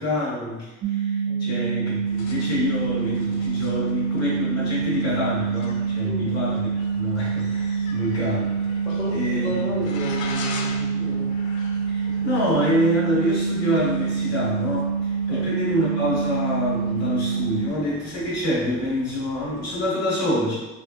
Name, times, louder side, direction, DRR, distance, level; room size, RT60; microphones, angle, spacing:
voice 1, 0.0-8.6 9.1-9.6 11.9-20.6, equal, 60° left, -6 dB, 1.2 m, -26 dB
sound 1, 0.8-17.7, right 6 dB, 35° right, 0.4 m, -26 dB
sound 2, 2.1-19.9, left 4 dB, 80° left, 0.5 m, -43 dB
voice 2, 8.8-11.3 12.2-12.3 15.3-15.5, left 1 dB, 15° left, -6 dB, 1.2 m, -33 dB
3.5 x 2.6 x 2.3 m, 1.1 s
cardioid pair, 90°, 30 cm